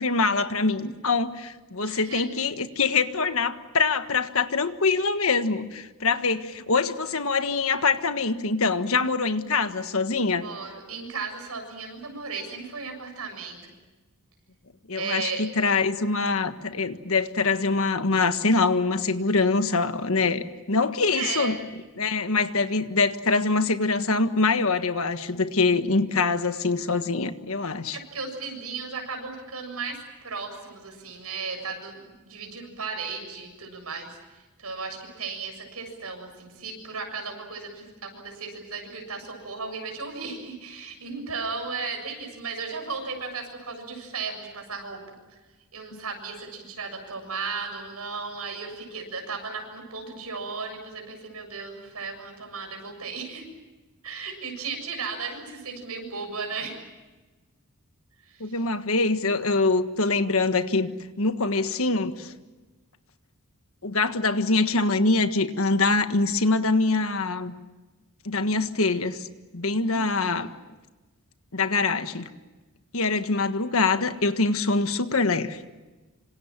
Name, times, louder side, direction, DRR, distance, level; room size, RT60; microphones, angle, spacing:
voice 1, 0.0-10.5 14.9-21.6 22.0-28.0 45.9-46.0 58.4-62.3 63.8-67.5 68.2-69.3 69.5-70.5 71.5-72.3 72.9-75.6, left 3 dB, 70° left, 9 dB, 1.6 m, -24 dB
voice 2, 1.8-2.3 10.4-13.7 14.9-15.5 21.1-21.7 27.9-45.2 45.7-53.5 54.0-56.8 58.3-58.6 69.9-70.4, right 4 dB, 85° right, 4 dB, 7.2 m, -35 dB
27.0 x 26.0 x 7.5 m, 1.2 s
head